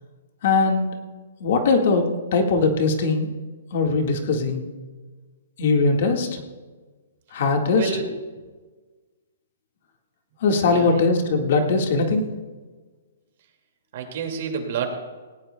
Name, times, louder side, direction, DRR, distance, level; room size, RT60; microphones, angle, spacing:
voice 1, 0.4-0.9 1.4-3.3 3.7-4.6 5.6-6.4 7.3-7.9 10.4-12.2, left 3 dB, 45° left, 3 dB, 1.7 m, -20 dB
voice 2, 7.7-8.1 10.6-11.0 13.9-14.9, right 6 dB, 45° right, 3 dB, 2.2 m, -29 dB
18.0 x 18.0 x 2.2 m, 1.4 s
hypercardioid pair, 170°, 0 cm